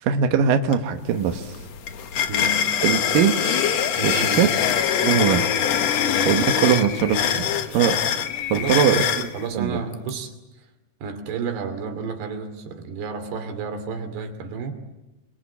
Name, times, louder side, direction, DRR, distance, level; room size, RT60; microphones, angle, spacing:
voice 1, 0.0-1.5 2.8-4.5 5.0-5.5 6.3-7.5 7.7-9.0 9.5-9.8, right 8 dB, 65° right, 5 dB, 2.8 m, -21 dB
sound 1, 0.7-0.8 1.1-9.3, left 8 dB, 65° left, 1.7 m, -24 dB
voice 2, 2.3-2.7 4.0-4.5 5.9-6.3 8.5-10.3 11.0-14.7, right 4 dB, 80° right, 7 dB, 4.8 m, -31 dB
sound 2, 3.4-9.5 9.9-10.1, left 11 dB, 80° left, 3.2 m, -29 dB
29.5 x 22.5 x 8.6 m, 1.0 s
omnidirectional pair, 4.7 m